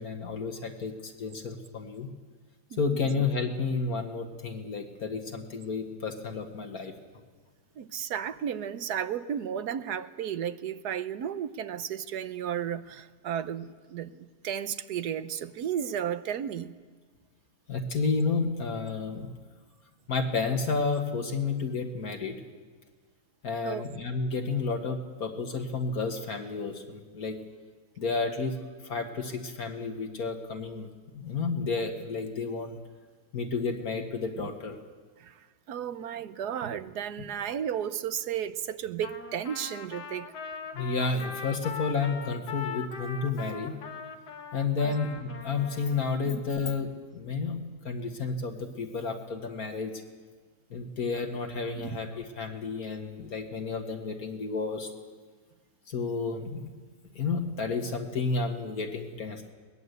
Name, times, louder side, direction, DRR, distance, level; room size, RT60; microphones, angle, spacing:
voice 1, 0.0-2.1 2.8-6.9 17.7-19.3 20.1-22.4 23.4-27.4 28.0-28.6 28.8-30.9 31.1-32.8 33.3-34.8 40.7-43.8 44.5-47.6 47.9-49.9 50.7-54.9 55.9-56.7 57.2-59.5, left 4 dB, 65° left, 2.0 m, -31 dB
voice 2, 7.8-16.7 23.6-23.9 34.4-34.5 35.2-35.3 35.7-40.3 44.8-45.0 46.3-46.4 51.7-52.0, right 9 dB, 80° right, 1.4 m, -33 dB
Trumpet, 39.0-46.1, left 5 dB, 80° left, 1.9 m, -41 dB
21.5 x 19.5 x 8.1 m
omnidirectional pair, 1.7 m